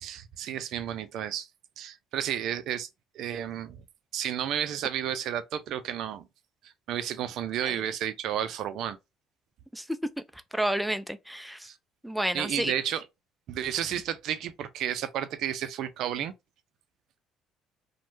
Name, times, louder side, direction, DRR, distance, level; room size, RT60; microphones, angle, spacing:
voice 1, 0.0-1.5 1.8-2.9 3.1-3.8 4.1-6.3 6.6-9.0 11.6-11.8 12.3-13.0 13.5-16.3, right 10 dB, 65° right, 0.4 m, -32 dB
voice 2, 10.3-11.7 12.0-12.7, right 1 dB, ahead, 0.4 m, -31 dB
3.1 x 2.1 x 3.1 m
cardioid pair, 100°, 0 cm